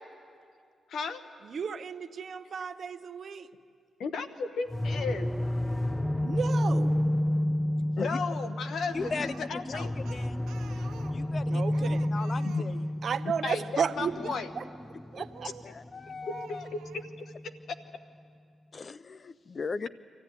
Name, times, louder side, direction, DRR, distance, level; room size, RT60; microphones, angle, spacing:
voice 1, 0.9-1.2 4.0-5.3 7.9-9.9 12.4-12.7 13.4-14.5 15.6-15.7 16.3-17.3, left 4 dB, 75° left, 10 dB, 1.2 m, -35 dB
voice 2, 1.4-3.5 6.2-7.0 11.5-12.0 12.6-12.8 13.0-14.1 14.6-14.7 15.1-15.5, right 6 dB, 60° right, 12 dB, 0.8 m, -33 dB
sound 1, 4.7-17.5, left 1 dB, 15° left, 0.8 m, -31 dB
voice 3, 8.9-10.4 11.1-12.9 15.1-15.2 15.7-16.7 18.7-19.9, left 4 dB, 45° left, 18 dB, 0.5 m, -38 dB
Speech, 9.0-13.3 15.3-15.8 16.2-17.1, right 8 dB, 85° right, 1.2 m, -50 dB
24.5 x 14.5 x 9.7 m, 2.4 s
cardioid pair, 65°, 0 cm